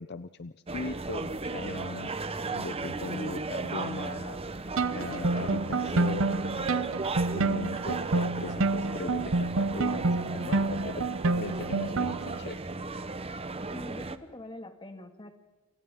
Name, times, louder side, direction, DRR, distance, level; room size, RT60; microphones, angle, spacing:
voice 1, 0.0-6.7 7.0-12.6, left 3 dB, 50° left, 13 dB, 0.6 m, -39 dB
sound 1, 0.7-14.2, right 3 dB, 25° right, 1.0 m, -35 dB
sound 2, 4.8-12.4, right 3 dB, 65° right, 0.8 m, -28 dB
voice 2, 13.7-15.3, left 1 dB, 20° left, 6 dB, 2.2 m, -44 dB
29.0 x 27.0 x 3.8 m, 1.2 s
head